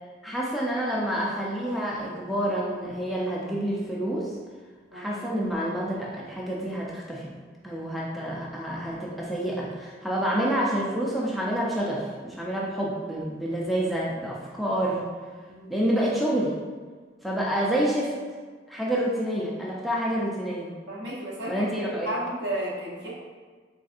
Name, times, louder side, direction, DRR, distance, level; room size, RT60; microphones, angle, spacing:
voice 1, 0.2-4.3 4.9-7.2 7.6-15.0 15.7-16.5 17.2-18.1 18.7-20.7 21.5-22.1, right 1 dB, ahead, -5 dB, 0.3 m, -28 dB
voice 2, 20.9-21.7 22.0-23.1, right 1 dB, 70° right, -6 dB, 0.9 m, -33 dB
3.5 x 2.4 x 2.4 m, 1.5 s
head